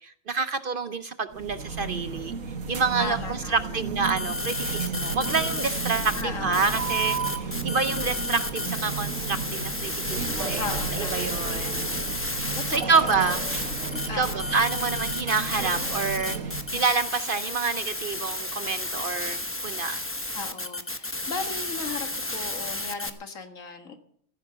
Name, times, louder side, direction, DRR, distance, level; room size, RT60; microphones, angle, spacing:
voice 1, 0.0-2.3 2.7-10.7 10.9-11.8 12.7-13.4 14.1-20.0, right 4 dB, 50° right, 11 dB, 0.7 m, -28 dB
sound 1, 1.3-16.9, right 5 dB, 75° right, 1.7 m, -33 dB
voice 2, 3.0-3.8 6.2-6.7 10.6-11.7 12.6-13.2 14.1-14.6 20.3-24.0, left 4 dB, 75° left, 6 dB, 2.0 m, -36 dB
sound 2, 4.0-6.2 6.5-23.1, left 2 dB, 10° left, 0.8 m, -32 dB
15.0 x 10.0 x 6.7 m, 0.65 s
omnidirectional pair, 1.4 m